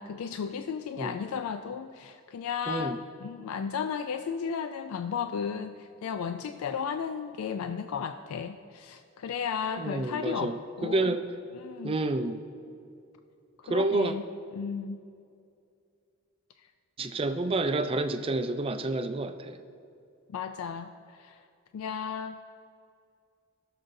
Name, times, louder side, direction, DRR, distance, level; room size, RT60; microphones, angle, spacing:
voice 1, 0.0-11.2 11.5-12.0 13.7-14.2 14.5-15.0 20.3-21.4 21.7-22.4, left 6 dB, 80° left, 9 dB, 0.3 m, -34 dB
voice 2, 9.8-11.2 11.8-12.4 13.6-14.1 17.0-19.6, right 2 dB, 25° right, 9 dB, 0.4 m, -29 dB
18.0 x 6.5 x 2.6 m, 2.5 s
head